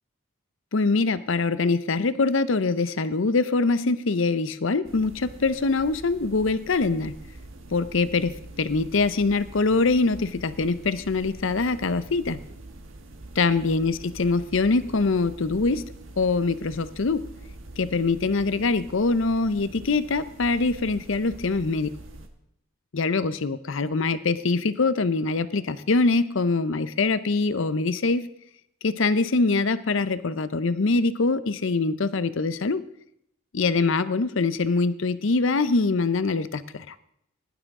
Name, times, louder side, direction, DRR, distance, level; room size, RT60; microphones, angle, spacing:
voice 1, 0.7-7.1 7.7-12.4 13.4-17.3 17.8-21.9 22.9-28.3 28.8-32.8 33.5-36.9, left 3 dB, 65° left, 14 dB, 0.7 m, -24 dB
sound 1, 4.8-22.3, right 2 dB, 70° right, 1.4 m, -44 dB
17.0 x 11.5 x 3.7 m, 0.74 s
head